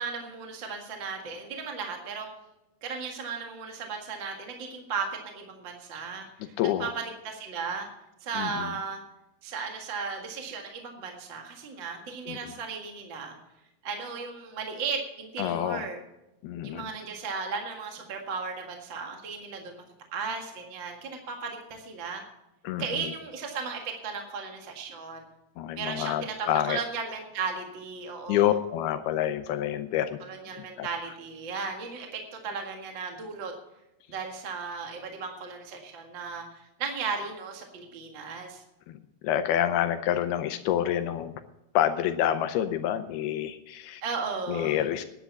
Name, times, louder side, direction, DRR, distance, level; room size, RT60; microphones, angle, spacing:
voice 1, 0.0-2.3 2.8-6.5 6.8-7.9 8.2-9.0 9.4-13.3 13.8-16.0 16.6-19.8 20.1-22.2 22.8-25.2 25.7-28.5 30.2-33.5 34.1-38.6 44.0-44.8, right 5 dB, 45° right, 2 dB, 1.6 m, -35 dB
voice 2, 6.6-6.9 8.4-8.7 12.3-12.5 15.4-15.9 16.4-16.9 22.6-23.1 25.6-26.8 28.3-30.2 30.5-30.9 38.9-41.3 41.7-44.0 44.5-45.0, left 11 dB, 80° left, 9 dB, 2.5 m, -28 dB
10.5 x 10.0 x 7.0 m, 0.92 s
omnidirectional pair, 4.7 m